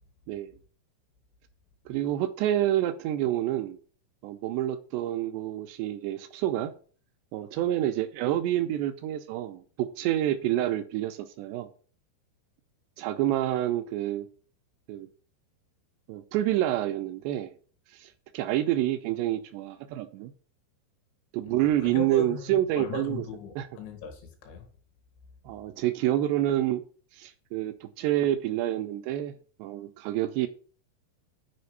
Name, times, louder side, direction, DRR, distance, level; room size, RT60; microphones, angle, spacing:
voice 1, 1.9-3.8 4.2-6.7 7.3-11.7 13.0-14.3 14.9-15.1 16.1-17.5 17.9-20.3 21.3-23.2 23.6-23.7 25.5-26.8 27.1-29.3 29.6-30.5, right 13 dB, 80° right, 2.5 m, -28 dB
voice 2, 21.5-22.5 22.8-24.7, left 5 dB, 70° left, 4.1 m, -38 dB
8.5 x 5.1 x 6.6 m
omnidirectional pair, 5.5 m